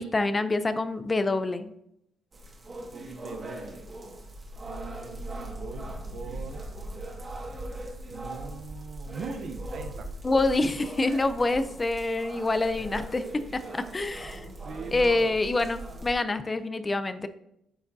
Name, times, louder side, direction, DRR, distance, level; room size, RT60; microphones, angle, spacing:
voice 1, 0.0-1.7 10.2-14.5 14.9-17.3, left 2 dB, 25° left, 11 dB, 0.5 m, -26 dB
sound 1, 2.3-16.1, right 1 dB, 35° right, 1.7 m, -40 dB
voice 2, 2.9-3.9 4.6-6.6 8.1-10.1 12.8-12.9 13.3-13.4 14.2-14.3 14.6-15.4, right 4 dB, 65° right, 7 dB, 0.8 m, -41 dB
12.5 x 4.9 x 2.7 m, 0.79 s
cardioid pair, 90°, 0 cm